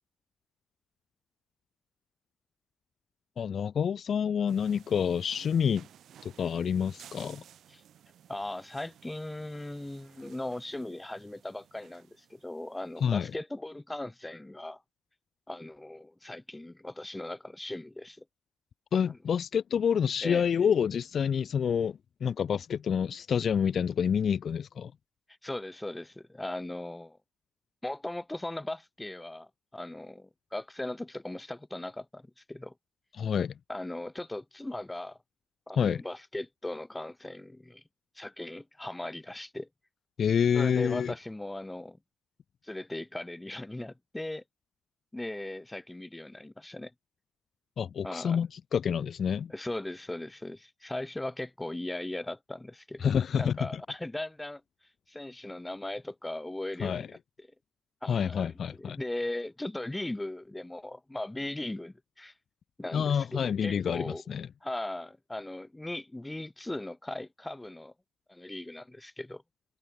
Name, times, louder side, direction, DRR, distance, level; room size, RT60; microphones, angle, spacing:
voice 1, 3.4-5.8 6.2-7.4 13.0-13.3 18.9-24.9 33.2-33.5 35.8-36.0 40.2-41.1 47.8-49.5 53.0-53.8 56.8-57.1 58.1-59.0 62.9-64.5, left 7 dB, 55° left, 0.4 m, -28 dB
sound 1, 4.5-13.3, right 10 dB, 65° right, 7.9 m, -56 dB
voice 2, 8.3-14.8 15.5-18.2 20.2-20.5 25.4-27.2 27.8-32.7 33.7-35.2 35.7-37.8 38.2-39.7 40.5-42.0 42.6-44.4 45.1-46.9 48.0-48.4 49.5-53.1 53.4-54.6 55.1-57.5 58.0-62.3 62.8-64.2 64.6-67.9 68.3-69.4, left 1 dB, 10° left, 1.0 m, -38 dB
cardioid pair, 90°, 0 cm